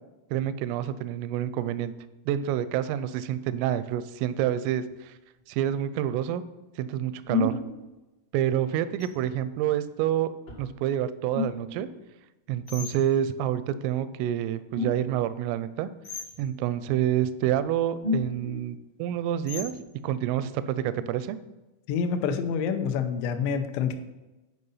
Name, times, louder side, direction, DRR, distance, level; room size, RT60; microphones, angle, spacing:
voice 1, 0.3-1.9 2.3-5.1 5.5-6.4 6.8-7.6 8.3-10.3 10.6-11.9 12.5-15.9 16.4-19.7 20.0-21.4, right 11 dB, 85° right, 14 dB, 3.1 m, -28 dB
sound 1, 4.9-5.0 7.3-7.7 9.0-9.5 10.5-10.7 11.3-11.8 12.7-12.9 14.7-15.2 16.0-16.4 17.4-17.6 18.0-18.6 19.5-19.8, left 3 dB, 65° left, 1.4 m, -31 dB
voice 2, 21.9-24.0, left 6 dB, 85° left, 7 dB, 2.6 m, -27 dB
9.5 x 5.2 x 5.5 m, 1.1 s
omnidirectional pair, 5.8 m